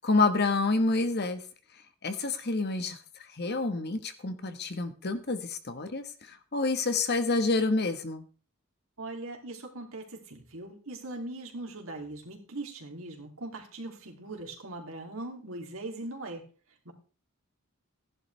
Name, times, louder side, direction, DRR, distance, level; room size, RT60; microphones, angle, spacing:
voice 1, 0.0-1.4 2.0-3.0 3.4-8.2, left 3 dB, 50° left, 9 dB, 1.3 m, -28 dB
voice 2, 9.0-16.5 16.8-16.9, right 2 dB, 75° right, 2 dB, 2.8 m, -40 dB
15.0 x 11.0 x 3.3 m, 0.36 s
head